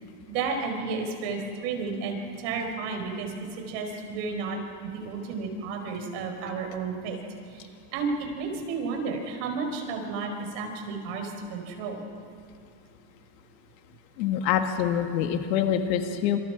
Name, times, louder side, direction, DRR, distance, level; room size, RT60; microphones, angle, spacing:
voice 1, 0.3-4.6 4.9-7.2 7.5-12.0, right 4 dB, 65° right, 3 dB, 4.9 m, -32 dB
voice 2, 14.2-16.4, left 9 dB, 90° left, 6 dB, 1.8 m, -25 dB
27.0 x 26.5 x 4.9 m, 2.4 s
supercardioid pair, 145°, 49 cm